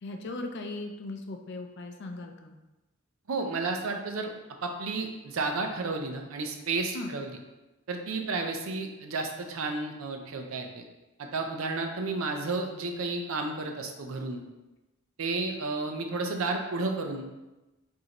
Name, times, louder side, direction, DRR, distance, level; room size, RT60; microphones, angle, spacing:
voice 1, 0.0-2.5 6.9-7.2, left 2 dB, 55° left, 4 dB, 0.4 m, -38 dB
voice 2, 3.3-4.3 4.6-7.3 7.9-10.8 11.2-14.4 15.2-17.3, right 3 dB, 75° right, 4 dB, 0.5 m, -32 dB
5.0 x 2.7 x 3.0 m, 1.1 s
head